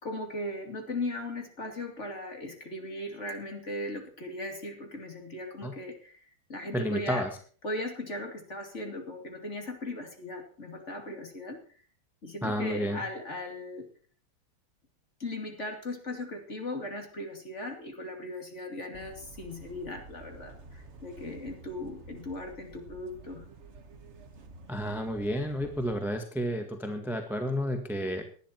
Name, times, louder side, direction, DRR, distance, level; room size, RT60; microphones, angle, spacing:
voice 1, 0.0-7.2 7.6-11.6 12.2-13.9 15.2-23.5, left 1 dB, 30° left, 4 dB, 2.9 m, -38 dB
voice 2, 6.7-7.3 12.4-13.0 24.7-28.2, equal, ahead, 5 dB, 1.4 m, -31 dB
sound 1, 18.9-26.0, right 3 dB, 35° right, 1.4 m, -50 dB
18.5 x 11.5 x 4.5 m, 0.44 s
omnidirectional pair, 2.4 m